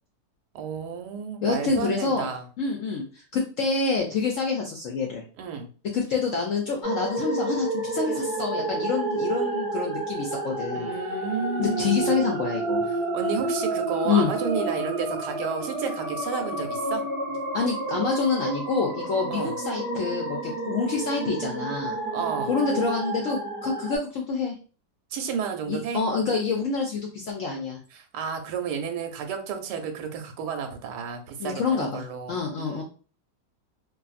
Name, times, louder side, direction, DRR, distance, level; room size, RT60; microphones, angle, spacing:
voice 1, 0.5-2.5 5.4-5.7 10.7-12.1 13.1-17.0 19.3-19.5 22.1-22.5 25.1-26.0 27.9-32.8, right 6 dB, 80° right, 5 dB, 1.2 m, -32 dB
voice 2, 1.4-2.3 2.6-5.2 5.9-10.9 11.6-12.9 14.0-14.3 17.5-22.0 22.5-24.6 25.7-27.8 31.4-32.0 32.3-32.8, left 4 dB, 70° left, 0 dB, 0.7 m, -27 dB
sound 1, 6.8-24.0, right 2 dB, 45° right, 0.8 m, -30 dB
2.6 x 2.5 x 2.4 m, 0.37 s
omnidirectional pair, 1.8 m